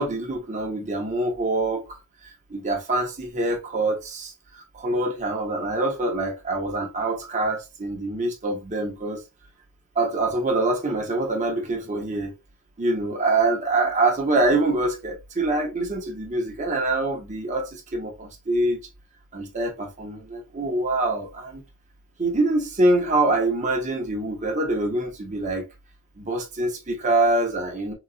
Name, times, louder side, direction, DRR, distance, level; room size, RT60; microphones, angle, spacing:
voice 1, 0.0-1.9 2.5-9.2 9.9-12.3 12.8-18.9 19.3-21.6 22.2-25.6 26.2-27.9, right 2 dB, 35° right, 0.9 m, -25 dB
3.8 x 2.3 x 2.4 m
head